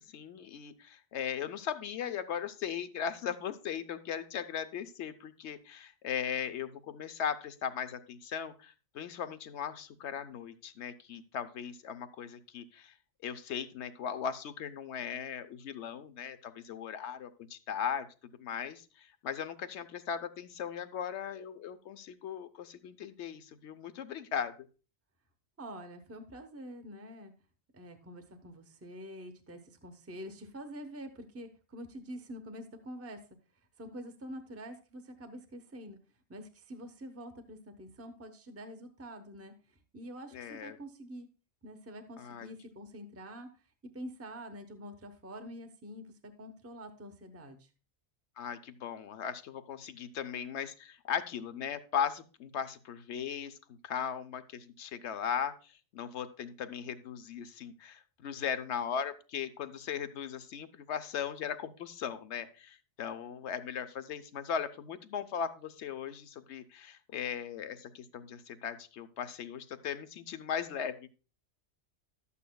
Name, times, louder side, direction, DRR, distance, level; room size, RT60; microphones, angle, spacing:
voice 1, 0.0-12.9 13.2-18.1 18.4-24.7 40.3-40.8 42.2-42.5 48.4-53.6 53.8-71.1, left 8 dB, 80° left, 11 dB, 1.0 m, -38 dB
voice 2, 25.6-27.3 27.7-33.2 33.8-36.0 36.3-41.3 41.6-43.6 43.9-47.7, equal, 15° right, 6 dB, 0.8 m, -46 dB
12.5 x 8.5 x 2.2 m, 0.34 s
omnidirectional pair, 1.2 m